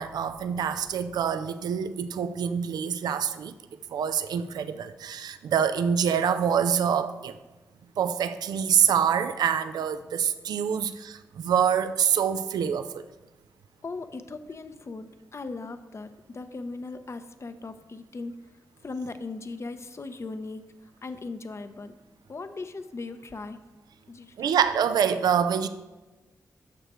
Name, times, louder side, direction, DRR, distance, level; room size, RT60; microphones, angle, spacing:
voice 1, 0.0-3.6 3.9-7.4 8.0-13.0 24.4-25.7, right 8 dB, 80° right, 0.4 m, -26 dB
voice 2, 13.8-18.4 18.8-22.0 22.3-23.6 24.1-24.6, left 3 dB, 45° left, 0.7 m, -38 dB
11.5 x 6.5 x 3.0 m
supercardioid pair, 45°, 7 cm